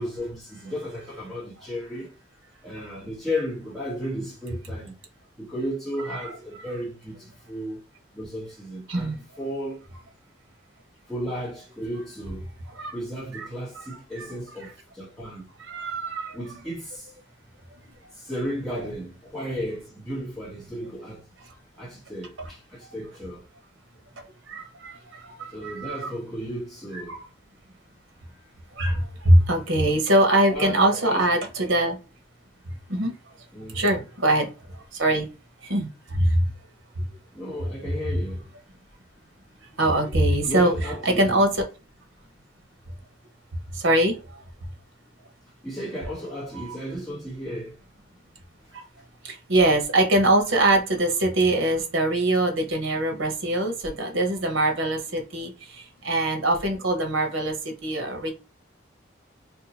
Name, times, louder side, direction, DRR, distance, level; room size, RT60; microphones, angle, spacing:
voice 1, 0.0-2.1 2.6-5.0 5.4-7.8 8.1-9.8 11.1-12.4 12.9-15.4 16.3-17.1 18.1-21.3 21.8-23.4 25.5-27.2 30.5-31.3 33.5-34.0 37.3-38.5 40.4-41.5 45.6-47.8, equal, ahead, 1.1 m, -34 dB
voice 2, 6.2-6.7 8.9-9.1 12.8-12.9 13.3-13.5 15.7-16.3 24.5-24.9 25.6-26.1 26.9-27.2 28.8-29.0 29.2-32.0 32.9-33.1 33.7-34.5 35.0-35.3 35.7-35.9 36.1-36.3 39.8-40.7 41.0-41.6 43.8-44.1 46.5-46.7 49.2-55.5 56.0-58.3, right 1 dB, 85° right, 0.9 m, -22 dB
2.8 x 2.3 x 4.0 m
head